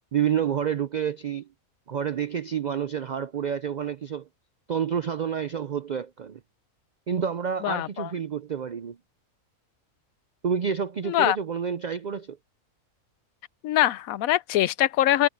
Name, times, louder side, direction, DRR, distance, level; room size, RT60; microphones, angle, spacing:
voice 1, 0.1-1.5 1.9-4.3 4.7-6.4 7.1-9.0 10.4-12.4, right 8 dB, 80° right, 0.4 m, -29 dB
voice 2, 7.6-8.1 11.1-11.4 13.6-15.3, left 13 dB, 80° left, 1.1 m, -23 dB
omnidirectional pair, 1.5 m